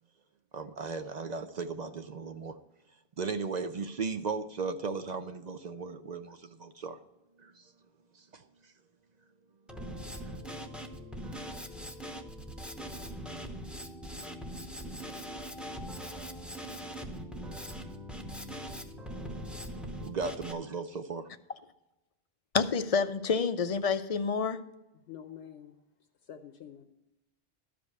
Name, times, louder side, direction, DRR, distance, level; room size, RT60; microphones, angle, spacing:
voice 1, 0.5-2.6 3.2-7.0 7.4-7.7 8.1-8.4 20.0-21.3, right 4 dB, 50° right, 9 dB, 0.6 m, -36 dB
Drum kit, 9.7-20.5, equal, ahead, 0.7 m, -41 dB
voice 2, 22.5-24.6, left 5 dB, 45° left, 11 dB, 0.5 m, -28 dB
voice 3, 25.1-25.7 26.2-26.9, left 9 dB, 80° left, 7 dB, 1.0 m, -47 dB
12.5 x 5.2 x 6.5 m, 0.98 s
omnidirectional pair, 1.1 m